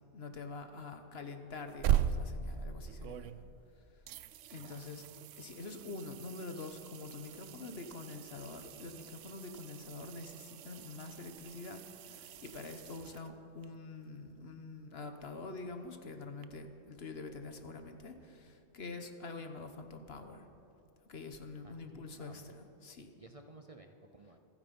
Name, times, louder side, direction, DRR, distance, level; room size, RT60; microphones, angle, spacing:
voice 1, 0.1-3.4 3.9-4.0 4.5-5.1 5.4-20.4 21.1-23.1, left 3 dB, 60° left, 7 dB, 1.3 m, -46 dB
sound 1, 1.5-3.7 4.1-13.7 16.4-16.5, right 10 dB, 85° right, 0.9 m, -39 dB
voice 2, 4.6-4.9 21.6-22.5 23.2-24.4, right 2 dB, 35° right, 5 dB, 0.7 m, -56 dB
27.0 x 9.7 x 5.4 m, 2.7 s
omnidirectional pair, 1.2 m